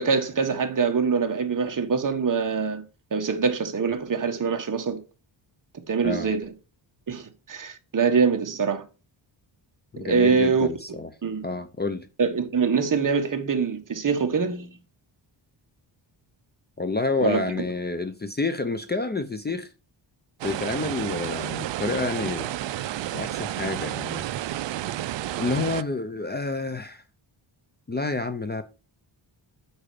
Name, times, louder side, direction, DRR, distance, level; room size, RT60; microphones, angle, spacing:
voice 1, 0.0-2.8 3.1-5.0 5.9-6.5 7.1-8.8 10.0-10.7 11.2-11.4 12.2-14.7 17.2-17.4, right 5 dB, 40° right, 1.4 m, -24 dB
voice 2, 6.0-6.4 9.9-11.1 11.4-12.1 16.8-19.7 20.4-22.5 23.1-24.2 25.4-27.0 27.9-28.6, left 3 dB, 20° left, 0.6 m, -29 dB
sound 1, 20.4-25.8, right 13 dB, 65° right, 0.5 m, -31 dB
8.9 x 5.7 x 5.0 m
wide cardioid pair, 160°, 49 cm